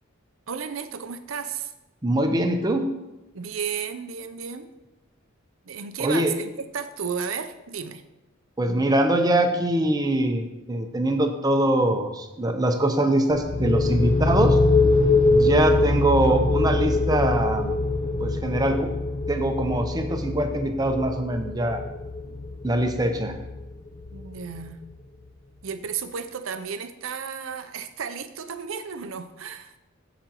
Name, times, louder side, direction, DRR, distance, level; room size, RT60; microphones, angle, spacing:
voice 1, 0.5-1.7 3.3-4.7 5.7-8.0 22.0-22.4 24.1-24.9 25.6-29.7, right 6 dB, 75° right, 10 dB, 0.6 m, -33 dB
voice 2, 2.0-2.8 6.0-6.3 8.6-14.6 15.3-17.7 18.2-18.9 19.3-21.8 22.6-23.3, right 1 dB, 20° right, 5 dB, 0.7 m, -23 dB
sound 1, 13.3-24.8, left 2 dB, 30° left, 0.5 m, -24 dB
15.0 x 5.1 x 3.0 m, 0.98 s
head